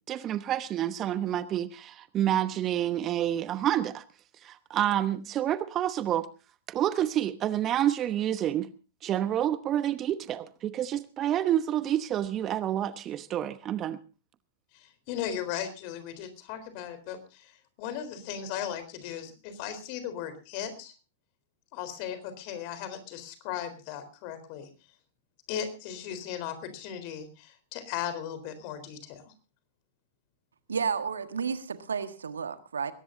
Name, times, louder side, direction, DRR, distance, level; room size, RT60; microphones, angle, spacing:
voice 1, 0.1-4.0 4.4-6.3 6.7-8.7 9.0-14.0, right 11 dB, 30° right, 13 dB, 0.9 m, -28 dB
voice 2, 14.7-20.9 21.7-24.7 25.5-29.3, left 9 dB, 45° left, 11 dB, 3.9 m, -37 dB
voice 3, 30.7-32.9, right 6 dB, 75° right, 9 dB, 1.6 m, -31 dB
21.5 x 18.5 x 2.6 m, 0.33 s
figure-of-eight pair, 100°, 0 cm